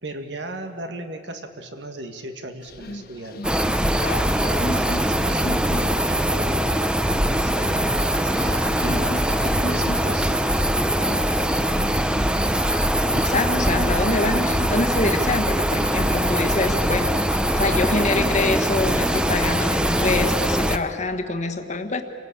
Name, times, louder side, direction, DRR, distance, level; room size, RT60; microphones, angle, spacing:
voice 1, 0.0-3.5 4.7-10.6, right 1 dB, 80° right, 6 dB, 2.0 m, -36 dB
sound 1, 2.6-19.3, left 1 dB, 60° left, 1.6 m, -37 dB
sound 2, 3.4-20.8, right 1 dB, 5° right, 0.7 m, -22 dB
sound 3, 4.0-14.2, left 2 dB, 80° left, 2.6 m, -39 dB
voice 2, 13.1-17.2 17.5-22.0, left 2 dB, 40° left, 7 dB, 1.4 m, -25 dB
27.5 x 17.5 x 8.7 m, 2.6 s
head